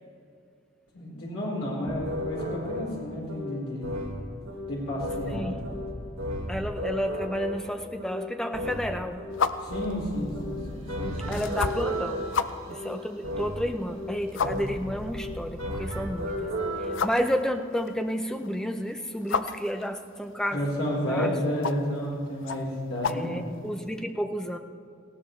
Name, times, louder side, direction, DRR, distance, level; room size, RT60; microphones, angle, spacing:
voice 1, 0.9-3.9 4.7-5.6 9.6-11.6 14.3-14.6 20.5-23.3, equal, 80° left, -5 dB, 4.1 m, -31 dB
sound 1, 1.8-17.0, equal, 80° right, 1.8 m, -35 dB
voice 2, 5.3-5.6 6.5-9.3 11.3-12.3 12.7-16.5 16.8-20.7 21.1-21.3 23.1-24.6, equal, 5° left, 6 dB, 0.6 m, -31 dB
sound 2, 9.3-24.0, left 5 dB, 60° left, 0.5 m, -36 dB
19.0 x 16.5 x 3.2 m, 2.4 s
head